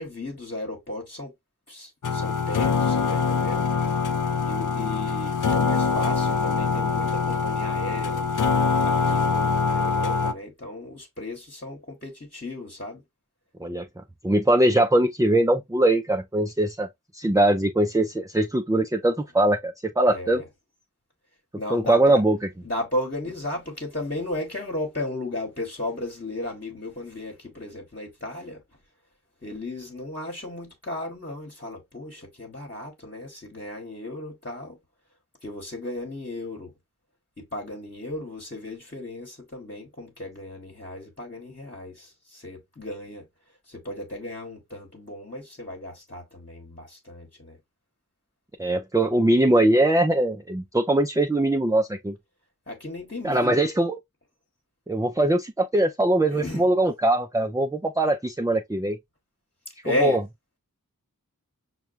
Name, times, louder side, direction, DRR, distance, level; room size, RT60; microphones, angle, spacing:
voice 1, 0.0-1.3 1.7-3.7 4.4-8.3 8.7-13.0 20.0-20.4 21.6-22.2 22.6-28.6 29.4-34.8 35.4-36.7 37.4-43.3 43.7-47.6 52.7-53.6 56.3-56.8 59.8-60.2, left 1 dB, 30° left, 1.3 m, -34 dB
sound 1, 2.0-10.3, left 5 dB, 60° left, 0.5 m, -24 dB
voice 2, 14.2-16.9 17.1-20.4 21.7-22.4 48.6-52.1 53.2-54.0 54.9-59.0 60.0-60.2, right 1 dB, 10° right, 0.4 m, -21 dB
5.8 x 2.3 x 2.5 m
wide cardioid pair, 45°, 36 cm